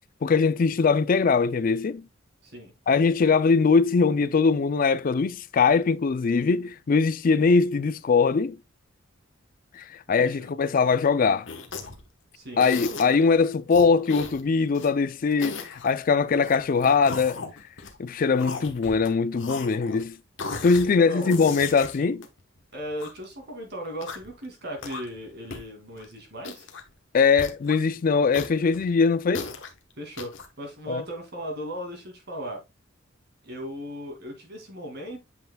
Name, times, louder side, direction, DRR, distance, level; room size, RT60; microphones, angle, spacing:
voice 1, 0.2-2.0 2.9-8.6 9.7-11.5 12.6-17.4 18.0-20.2 20.6-22.2 27.1-29.5 30.9-31.0, left 5 dB, 45° left, 0.4 m, -21 dB
voice 2, 10.1-10.5 12.3-12.9 20.8-21.4 22.7-26.7 30.0-32.6 33.4-35.2, equal, 55° right, 2.4 m, -37 dB
sound 1, 11.5-12.1 12.6-13.2 13.7-14.9 15.3-15.9 16.4-18.0 18.3-19.1 19.4-20.0 20.4-20.9 21.2-23.2 23.8-24.3 24.8-25.2 25.5-25.6 25.9-26.0 26.4-26.9 27.4-27.7 28.3-29.7 30.2-30.5, left 4 dB, 65° left, 1.1 m, -37 dB
7.9 x 5.6 x 2.2 m
head